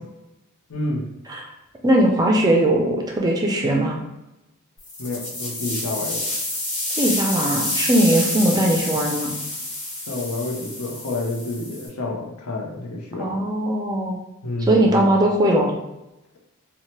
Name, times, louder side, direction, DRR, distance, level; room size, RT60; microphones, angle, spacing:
voice 1, 0.7-1.0 5.0-6.2 10.1-13.4 14.4-15.2, left 2 dB, 85° left, 0 dB, 0.6 m, -29 dB
voice 2, 1.8-4.0 7.0-9.3 13.2-14.2 14.6-15.7, right 1 dB, 15° right, 0 dB, 0.3 m, -19 dB
sound 1, 4.8-11.9, left 1 dB, 30° left, 1.0 m, -28 dB
2.8 x 2.1 x 3.0 m, 0.95 s
head